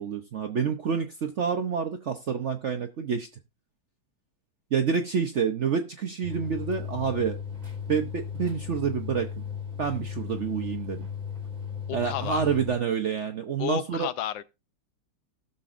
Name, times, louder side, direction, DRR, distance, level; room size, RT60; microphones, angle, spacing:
voice 1, 0.0-3.3 4.7-7.4 7.9-9.4 9.8-11.1 11.9-14.1, right 6 dB, 65° right, 0.7 m, -28 dB
sound 1, 6.2-12.8, left 7 dB, 25° right, 3.5 m, -36 dB
voice 2, 11.9-12.4 13.6-14.4, left 12 dB, 90° left, 1.4 m, -32 dB
18.5 x 6.7 x 2.5 m
omnidirectional pair, 2.0 m